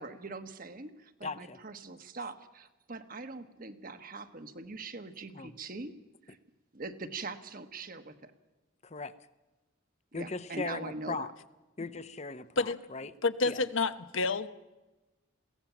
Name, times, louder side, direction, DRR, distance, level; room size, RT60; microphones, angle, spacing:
voice 1, 0.0-5.9 6.3-6.4 6.7-8.3 10.1-11.3, right 3 dB, 45° right, 9 dB, 1.4 m, -42 dB
voice 2, 1.2-1.6 5.3-5.5 8.8-9.1 10.1-11.3 11.8-13.1 13.4-13.6, left 3 dB, 35° left, 12 dB, 0.8 m, -38 dB
voice 3, 13.2-14.5, left 3 dB, 75° left, 11 dB, 1.1 m, -29 dB
22.5 x 17.0 x 7.2 m, 1.1 s
head